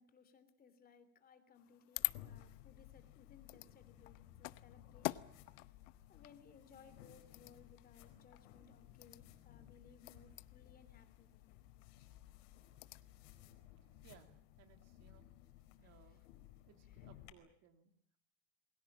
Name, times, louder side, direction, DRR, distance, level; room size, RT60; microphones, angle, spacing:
voice 1, 0.0-5.8 6.1-11.4, left 6 dB, 25° left, 10 dB, 3.2 m, -64 dB
sound 1, 1.5-13.2, left 20 dB, 90° left, 1.0 m, -48 dB
sound 2, 2.0-17.3, left 13 dB, 70° left, 4.6 m, -59 dB
voice 2, 13.8-15.3 15.8-16.3 16.7-18.2, right 8 dB, 45° right, 7 dB, 3.1 m, -65 dB
28.5 x 22.0 x 7.5 m, 0.65 s
supercardioid pair, 155°, 36 cm